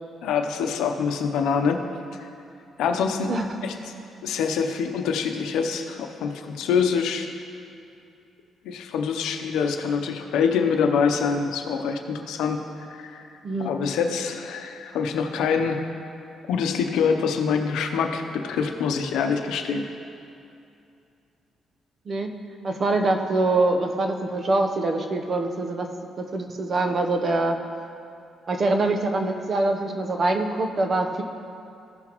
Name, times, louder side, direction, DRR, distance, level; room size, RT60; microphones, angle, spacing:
voice 1, 0.2-1.8 2.8-3.3 3.6-3.9 4.2-7.3 8.6-12.6 12.9-13.2 13.6-15.8 16.5-19.8, left 6 dB, 85° left, 5 dB, 0.7 m, -25 dB
voice 2, 22.6-25.9 26.2-27.6 28.5-31.2, right 2 dB, 45° right, 4 dB, 0.8 m, -24 dB
15.0 x 5.9 x 3.0 m, 2.6 s
cardioid pair, 90°, 0 cm